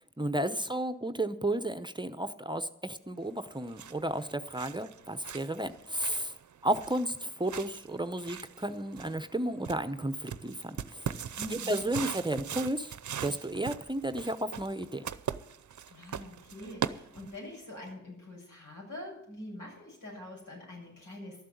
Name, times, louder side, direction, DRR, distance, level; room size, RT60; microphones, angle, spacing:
voice 1, 0.2-6.4 6.6-11.1 11.5-12.9 13.2-15.0, right 1 dB, 15° right, 11 dB, 0.7 m, -33 dB
sound 1, 3.4-17.6, right 8 dB, 70° right, 0.6 m, -41 dB
voice 2, 11.3-11.9 15.9-21.4, left 1 dB, 85° left, -2 dB, 7.6 m, -44 dB
13.0 x 7.5 x 9.7 m, 0.77 s
wide cardioid pair, 70°, 31 cm